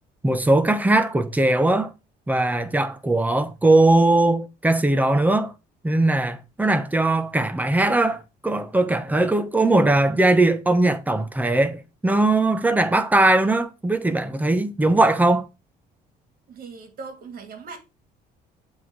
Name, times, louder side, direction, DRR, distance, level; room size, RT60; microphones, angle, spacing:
voice 1, 0.2-1.9 2.3-5.5 5.8-15.5, right 2 dB, 10° right, 1.0 m, -20 dB
voice 2, 16.5-17.8, right 4 dB, 60° right, 2.4 m, -39 dB
7.7 x 3.8 x 6.3 m
cardioid pair, 110°, 17 cm